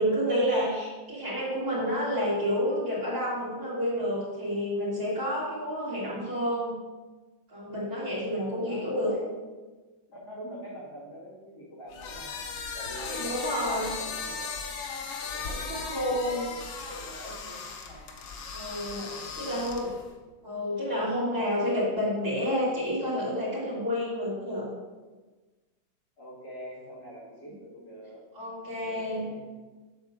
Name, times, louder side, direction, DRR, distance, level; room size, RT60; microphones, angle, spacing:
voice 1, 0.0-6.8 7.5-9.1 12.9-13.9 15.7-16.5 18.5-19.0 19.4-19.9 20.4-24.7 28.3-29.2, equal, 50° right, -8 dB, 3.2 m, -29 dB
voice 2, 8.4-9.5 10.1-12.4 12.7-14.6 15.2-18.1 18.9-19.7 26.2-28.2 28.6-29.5, equal, 55° left, -8 dB, 2.8 m, -44 dB
sound 1, 11.9-20.1, left 5 dB, 85° left, 1.6 m, -37 dB
8.0 x 3.6 x 6.5 m, 1.3 s
omnidirectional pair, 2.2 m